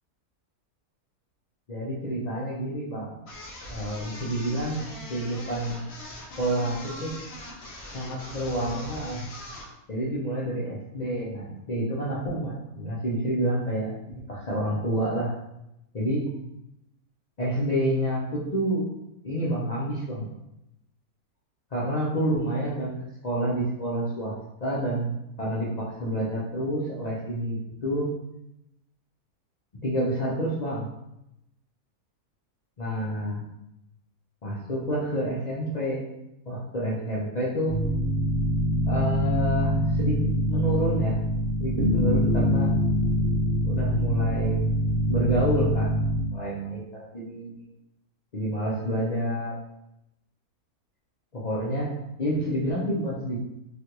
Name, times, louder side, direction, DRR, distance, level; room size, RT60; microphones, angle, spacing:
voice 1, 1.7-3.2 3.7-4.8 5.1-5.8 6.4-7.1 7.9-9.2 9.9-13.9 14.3-15.3 15.9-16.2 17.4-18.9 19.2-20.3 21.7-24.4 24.6-28.1 29.8-30.9 32.8-33.4 34.4-36.0 36.5-37.8 38.9-40.2 40.5-41.2 41.6-42.7 43.6-44.7 45.1-46.0 46.3-47.6 48.3-49.6 51.3-51.9 52.2-53.4, right 1 dB, 80° left, -8 dB, 0.3 m, -28 dB
sound 1, 3.3-9.7, left 1 dB, 60° left, 0.7 m, -41 dB
sound 2, 37.7-46.2, equal, 85° right, 1.2 m, -24 dB
3.2 x 2.4 x 2.8 m, 0.87 s
omnidirectional pair, 1.6 m